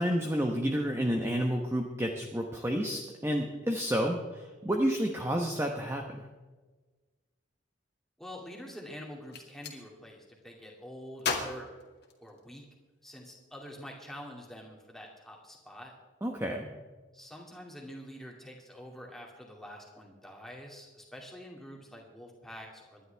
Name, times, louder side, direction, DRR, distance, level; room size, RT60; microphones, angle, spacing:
voice 1, 0.0-6.3 16.2-16.7, equal, 15° right, 1 dB, 1.0 m, -30 dB
voice 2, 8.2-11.7 12.2-12.6 13.0-15.9 17.1-23.1, equal, ahead, -2 dB, 2.4 m, -46 dB
Gunshot gunfire, 9.1-9.8 11.2-12.7, left 5 dB, 55° left, 2.0 m, -36 dB
26.0 x 11.0 x 3.5 m, 1.3 s
head